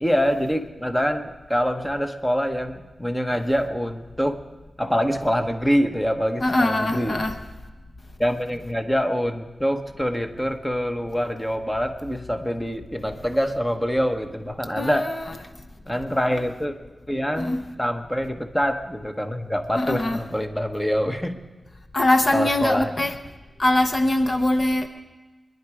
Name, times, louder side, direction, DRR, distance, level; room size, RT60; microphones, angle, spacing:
voice 1, 0.0-4.4 4.8-7.2 8.2-15.1 15.9-16.7 17.1-21.4 22.3-23.1, equal, 10° left, 1.1 m, -25 dB
voice 2, 6.4-7.4 14.7-15.3 17.3-17.6 19.8-20.2 21.9-23.1 23.6-24.9, left 1 dB, 40° left, 0.9 m, -22 dB
24.5 x 11.0 x 4.9 m
wide cardioid pair, 90°, 0 cm